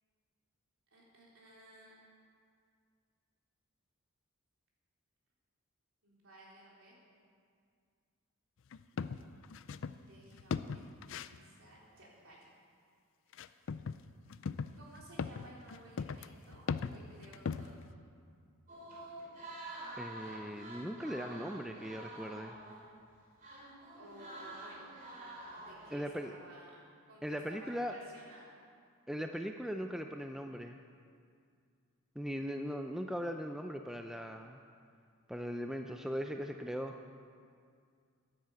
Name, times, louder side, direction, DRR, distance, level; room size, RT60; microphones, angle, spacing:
voice 1, 0.9-1.9 6.0-7.0 10.0-12.5 13.3-13.4 14.7-16.6 16.9-17.8 23.9-24.9 25.2-26.8 27.1-28.6, right 1 dB, 65° right, -4 dB, 3.8 m, -56 dB
sound 1, 8.7-10.0 10.3-11.4 13.3-14.0 14.3-17.9, left 5 dB, 60° left, 0.4 m, -38 dB
sound 2, 18.7-23.2 23.4-26.0, right 1 dB, 35° right, 2.8 m, -48 dB
voice 2, 20.0-22.6 25.9-26.4 27.2-28.0 29.1-30.8 32.2-34.6 35.3-37.0, equal, ahead, 4 dB, 0.4 m, -39 dB
10.5 x 10.5 x 7.9 m, 2.2 s
head